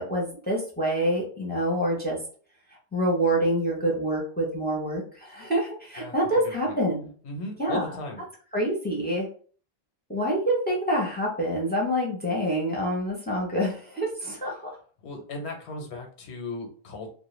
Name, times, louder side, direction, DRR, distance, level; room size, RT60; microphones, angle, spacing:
voice 1, 0.0-2.2 2.9-7.1 7.6-7.8 8.5-9.3 10.1-14.6, right 1 dB, 15° left, -2 dB, 0.4 m, -26 dB
voice 2, 6.4-6.7 7.2-8.2 15.0-17.1, left 2 dB, 90° left, 2 dB, 1.0 m, -36 dB
2.3 x 2.2 x 3.0 m, 0.43 s
omnidirectional pair, 1.1 m